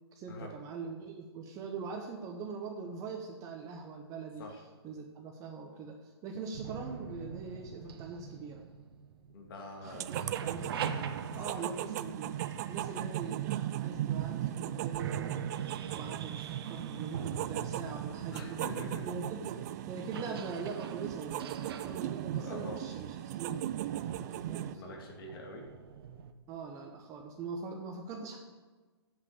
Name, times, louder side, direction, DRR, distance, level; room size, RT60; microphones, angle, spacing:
voice 1, 0.1-4.4 4.8-8.6 9.8-10.7 11.3-12.3 12.7-15.4 15.9-18.7 19.0-23.7 24.0-25.0 26.5-28.4, right 4 dB, 25° right, 2 dB, 1.0 m, -42 dB
sound 1, 6.5-9.7 10.0-13.9 14.5-14.6 15.0-26.3, right 7 dB, 60° right, 1.0 m, -43 dB
voice 2, 9.3-10.1 11.4-11.6 18.3-19.1 22.4-22.8 24.4-25.7, left 2 dB, 55° left, 0 dB, 2.4 m, -45 dB
sound 2, 9.8-24.7, right 12 dB, 40° right, 0.5 m, -37 dB
8.3 x 7.7 x 8.7 m, 1.3 s
hypercardioid pair, 145°, 14 cm